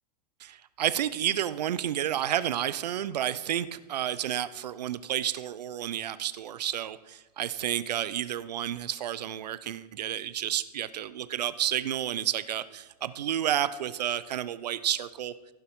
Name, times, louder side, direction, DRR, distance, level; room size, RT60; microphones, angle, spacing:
voice 1, 0.4-15.3, right 11 dB, 80° right, 15 dB, 0.6 m, -31 dB
15.5 x 5.7 x 4.6 m, 1.1 s
hypercardioid pair, 115°, 21 cm